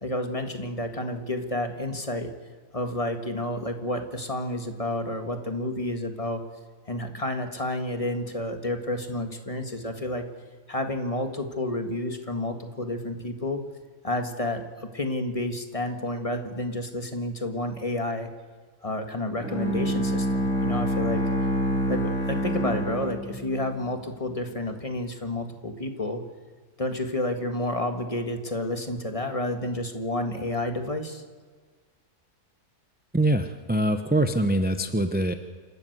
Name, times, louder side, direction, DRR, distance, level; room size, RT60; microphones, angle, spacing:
voice 1, 0.0-2.3 2.7-6.4 6.8-10.2 10.7-13.6 14.0-18.3 18.8-21.2 21.9-26.2 26.8-31.2, left 1 dB, 20° left, 6 dB, 1.7 m, -30 dB
Bowed string instrument, 19.4-23.8, equal, 65° left, 8.0 m, -27 dB
voice 2, 33.1-35.3, right 1 dB, 10° right, 8 dB, 0.6 m, -24 dB
27.5 x 13.0 x 8.0 m, 1.5 s
omnidirectional pair, 1.6 m